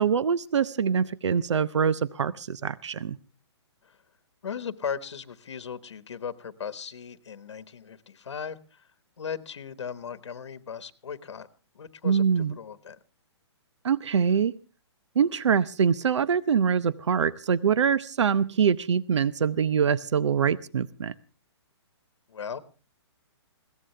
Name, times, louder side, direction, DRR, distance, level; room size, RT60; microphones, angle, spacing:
voice 1, 0.0-3.2 12.0-12.5 13.8-14.5 15.2-21.1, right 7 dB, 85° right, 17 dB, 0.8 m, -24 dB
voice 2, 4.4-8.9 9.2-11.5 11.7-13.0 22.3-22.6, left 7 dB, 75° left, 12 dB, 1.3 m, -37 dB
21.5 x 17.0 x 3.3 m, 0.35 s
hypercardioid pair, 175°, 15 cm